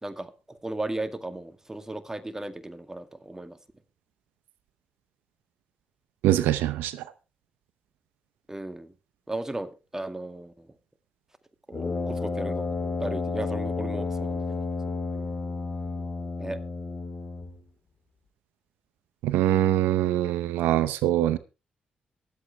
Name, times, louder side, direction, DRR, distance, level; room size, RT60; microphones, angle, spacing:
voice 1, 0.0-3.6 8.5-8.9 9.3-10.7 11.7-14.6 16.4-16.6, right 2 dB, 15° right, 2.1 m, -36 dB
voice 2, 6.2-6.9 19.2-21.4, right 13 dB, 90° right, 0.7 m, -23 dB
Brass instrument, 11.7-17.6, left 3 dB, 55° left, 3.9 m, -31 dB
23.0 x 8.2 x 3.4 m
supercardioid pair, 50°, 3 cm